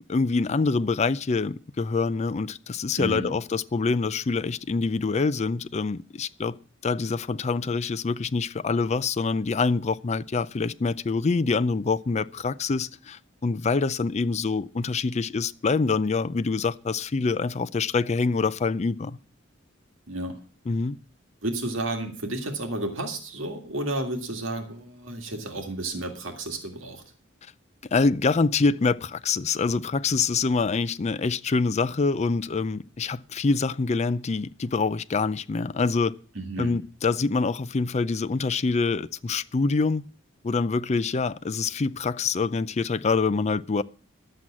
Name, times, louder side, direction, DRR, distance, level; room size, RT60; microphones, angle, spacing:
voice 1, 0.1-6.6 6.8-19.2 20.7-21.0 27.9-36.1 36.6-40.1 40.4-43.8, left 4 dB, 35° left, 0.5 m, -25 dB
voice 2, 3.0-3.4 20.1-20.4 21.4-27.0 36.4-36.8, right 1 dB, 85° right, 2.1 m, -32 dB
11.5 x 7.7 x 7.3 m
head